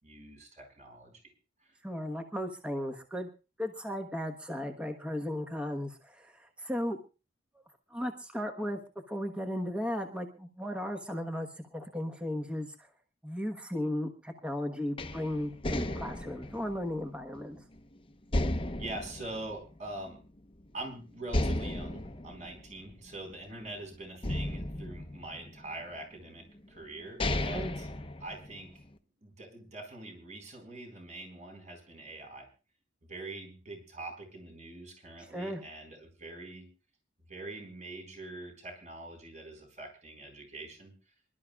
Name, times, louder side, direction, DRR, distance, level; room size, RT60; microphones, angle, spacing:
voice 1, 0.0-1.1 1.6-1.8 18.8-20.2 20.7-27.9 28.2-28.8 29.2-32.5 33.1-36.7 37.3-40.9, right 2 dB, 40° right, 4 dB, 4.5 m, -44 dB
voice 2, 1.8-3.3 3.6-7.0 7.9-8.8 9.1-12.7 13.2-17.6 27.5-27.7 35.3-35.6, left 1 dB, 5° right, 4 dB, 1.3 m, -35 dB
sound 1, 15.0-17.8 18.3-20.3 20.6-20.7 21.3-23.7 24.2-25.8 26.6-26.7 27.0-28.8, left 1 dB, 30° left, 0.9 m, -34 dB
27.0 x 12.5 x 2.4 m, 0.31 s
head